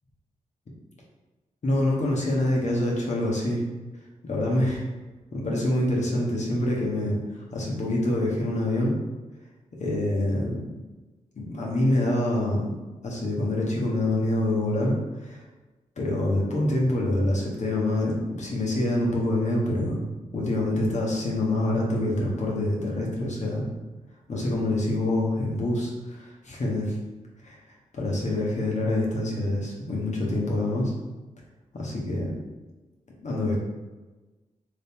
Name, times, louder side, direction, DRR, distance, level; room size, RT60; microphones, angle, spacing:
voice 1, 1.6-3.6 4.2-4.8 5.3-7.2 7.5-8.9 9.8-10.6 11.4-12.7 13.0-14.9 15.2-15.4 16.0-20.0 20.3-23.6 24.3-27.0 27.4-27.6 27.9-30.9 31.7-32.3 33.2-33.6, left 1 dB, 55° left, -3 dB, 1.0 m, -26 dB
3.2 x 2.8 x 3.5 m, 1.2 s
cardioid pair, 55°, 14 cm